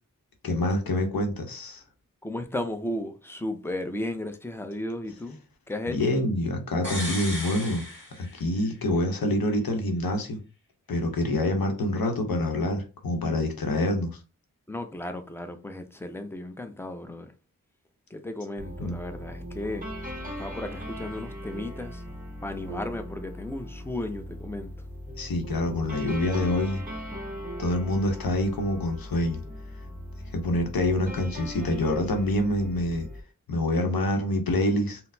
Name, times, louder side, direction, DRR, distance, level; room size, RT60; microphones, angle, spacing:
voice 1, 0.4-1.8 5.9-7.8 8.2-10.4 10.9-14.1 18.8-19.0 25.2-26.8 27.6-29.4 30.3-33.1 33.5-35.0, left 1 dB, 90° left, 0.8 m, -26 dB
voice 2, 2.2-6.2 14.7-17.3 18.1-19.9 20.3-22.0 22.4-24.7, left 1 dB, 5° left, 0.5 m, -35 dB
sound 1, 6.8-8.8 9.1-9.2, left 1 dB, 35° left, 1.3 m, -36 dB
sound 2, 18.6-33.2, equal, 25° right, 1.0 m, -39 dB
4.0 x 2.0 x 2.6 m
wide cardioid pair, 50°, 34 cm